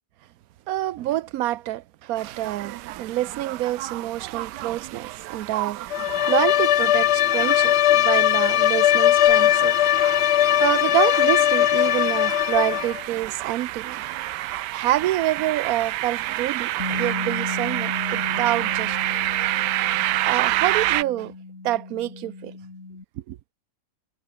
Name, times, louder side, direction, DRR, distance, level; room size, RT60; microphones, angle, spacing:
voice 1, 0.7-9.7 10.2-14.0 14.4-19.0 20.2-21.3 21.6-22.5 23.3-23.4, right 14 dB, 65° right, 1.1 m, -27 dB
sound 1, 2.2-21.0, right 16 dB, 90° right, 1.2 m, -29 dB
Bowed string instrument, 5.9-13.0, left 13 dB, 90° left, 0.6 m, -19 dB
Bass guitar, 16.8-23.0, left 3 dB, 45° left, 3.7 m, -35 dB
omnidirectional pair, 1.8 m